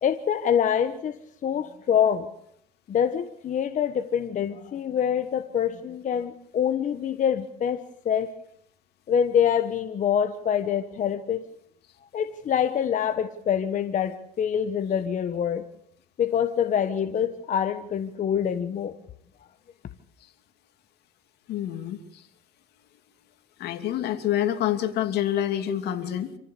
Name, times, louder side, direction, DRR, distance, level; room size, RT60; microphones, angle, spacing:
voice 1, 0.0-2.3 2.9-8.3 9.1-11.4 12.1-15.6 16.2-18.9, left 8 dB, 50° left, 9 dB, 1.4 m, -25 dB
voice 2, 21.5-22.3 23.6-26.4, left 11 dB, 75° left, 8 dB, 2.7 m, -27 dB
27.0 x 15.0 x 8.6 m, 0.73 s
cardioid pair, 110°, 17 cm